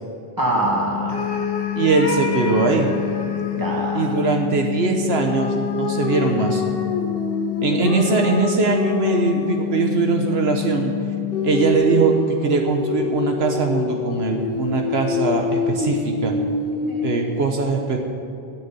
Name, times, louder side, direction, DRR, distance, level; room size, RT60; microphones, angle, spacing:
voice 1, 0.4-1.2 3.5-4.2 16.7-17.3, right 1 dB, 20° right, -2 dB, 2.1 m, -25 dB
sound 1, 0.6-11.7, left 15 dB, 10° left, 1.5 m, -28 dB
sound 2, 1.1-4.1 5.1-9.9 11.3-17.4, left 3 dB, 65° left, 1.2 m, -26 dB
voice 2, 1.8-2.9 3.9-6.6 7.6-10.9 11.4-16.3 17.0-18.0, right 4 dB, 75° right, 3 dB, 1.2 m, -21 dB
13.5 x 6.7 x 9.0 m, 2.6 s
omnidirectional pair, 1.1 m